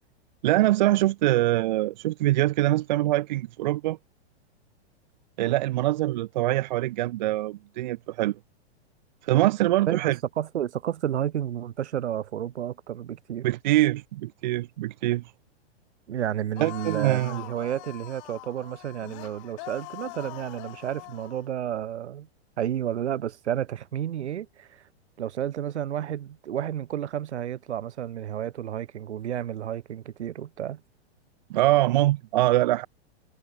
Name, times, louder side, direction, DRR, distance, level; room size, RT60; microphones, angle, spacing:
voice 1, 0.4-4.0 5.4-8.4 9.2-10.2 13.4-15.2 16.6-17.4 31.5-32.9, right 16 dB, 45° right, 0.8 m, -23 dB
voice 2, 9.9-13.5 16.1-22.3 22.6-24.8 25.2-30.8, right 10 dB, 90° right, 2.5 m, -31 dB
sound 1, 16.5-21.4, left 30 dB, 30° left, 1.2 m, -42 dB
supercardioid pair, 170°, 33 cm